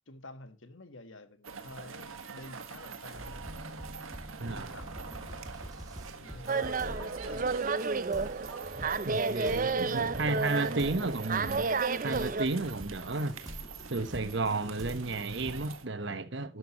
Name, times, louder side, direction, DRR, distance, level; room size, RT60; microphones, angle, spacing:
voice 1, 0.1-3.5 4.4-5.5 6.2-7.6 8.7-11.0, left 2 dB, 65° left, 1.6 m, -49 dB
sound 1, 1.4-15.9, right 5 dB, 80° right, 1.8 m, -45 dB
sound 2, 3.1-15.7, equal, 20° right, 2.5 m, -46 dB
voice 2, 4.4-4.7 9.0-11.8 12.0-13.4 13.9-16.6, right 3 dB, 55° right, 1.2 m, -33 dB
sound 3, 6.5-12.5, right 4 dB, 40° right, 0.6 m, -31 dB
12.5 x 11.5 x 3.1 m
head